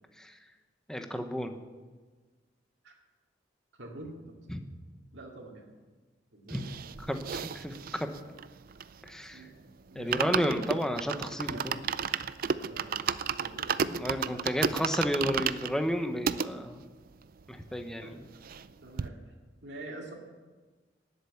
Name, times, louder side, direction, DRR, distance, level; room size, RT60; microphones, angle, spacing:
voice 1, 0.9-1.5 4.5-4.6 6.5-6.6 7.0-7.7 8.0-8.1 9.0-9.5 9.9-11.8 13.9-16.8 17.5-18.3, equal, 5° left, 6 dB, 1.0 m, -32 dB
voice 2, 3.8-4.4 5.1-5.7 6.3-6.8 9.3-10.6 11.4-11.8 12.6-13.0 13.3-14.7 18.0-18.4 18.8-19.2 19.6-20.1, right 2 dB, 65° right, -1 dB, 2.4 m, -45 dB
sound 1, 6.5-9.3 9.6-9.7 9.9-16.5 17.1-17.2 17.3-17.4 17.7-18.7 19.0-19.1, right 7 dB, 50° right, 0.4 m, -33 dB
18.5 x 8.0 x 7.1 m, 1.3 s
head